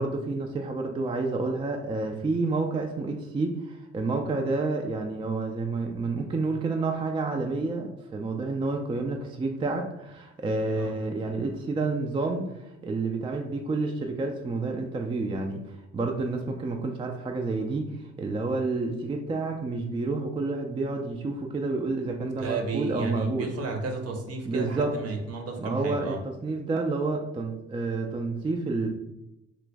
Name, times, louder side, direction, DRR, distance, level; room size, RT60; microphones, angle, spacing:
voice 1, 0.0-17.9 18.2-23.5 24.5-24.9 25.6-28.9, right 3 dB, 20° right, 3 dB, 0.3 m, -29 dB
voice 2, 22.4-26.2, right 3 dB, 55° right, 3 dB, 0.8 m, -32 dB
3.0 x 2.4 x 3.4 m, 0.90 s
cardioid pair, 90°, 30 cm